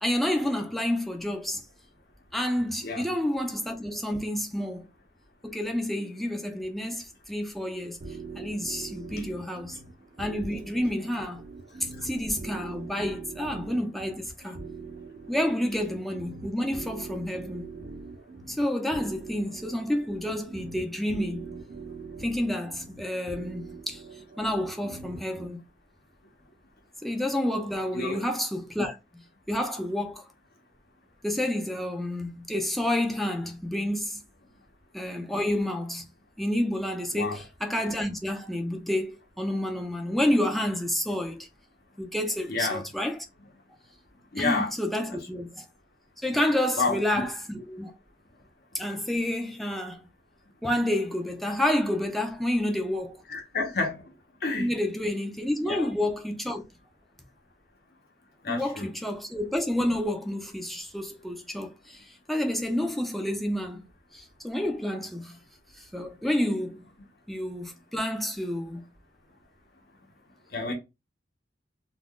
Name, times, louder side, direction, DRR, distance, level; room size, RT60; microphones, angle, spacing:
voice 1, 0.0-1.6 2.3-4.9 5.4-8.0 8.4-9.8 10.2-11.4 11.8-14.6 15.3-17.7 18.5-21.6 22.2-24.0 24.4-25.6 27.0-29.0 29.5-30.2 31.2-34.2 34.9-36.1 36.4-41.5 42.0-43.3 44.4-45.7 46.2-48.0 48.7-50.0 50.6-53.2 54.5-56.6 58.5-63.9 64.1-65.4 65.8-66.8 67.3-68.8, left 1 dB, ahead, 0.4 m, -29 dB
sound 1, 8.0-25.5, right 4 dB, 50° right, 0.5 m, -43 dB
voice 2, 27.9-28.2 37.1-37.4 42.5-42.8 44.3-44.7 46.8-47.2 53.3-53.9 54.4-54.7 55.7-55.9 58.4-58.9 70.5-70.7, left 3 dB, 60° left, 0.9 m, -29 dB
2.4 x 2.3 x 3.5 m
head